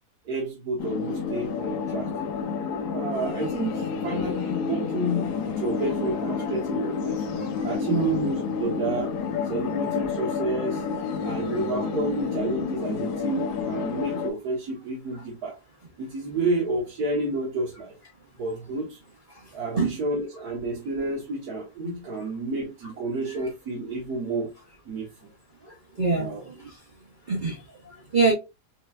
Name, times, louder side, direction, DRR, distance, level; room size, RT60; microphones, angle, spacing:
voice 1, 0.2-2.1 2.9-7.2 7.6-9.2 9.5-10.8 11.2-15.6 16.0-17.9 18.4-19.0 19.5-24.5 24.8-25.1 26.1-26.4, right 2 dB, 70° right, 1.6 m, -30 dB
sound 1, 0.8-14.3, left 5 dB, 80° left, 1.2 m, -30 dB
voice 2, 7.6-8.3 11.4-11.6 19.3-19.9 25.6-26.8 27.3-28.3, right 3 dB, 35° right, 1.0 m, -27 dB
5.3 x 2.6 x 2.4 m
omnidirectional pair, 1.7 m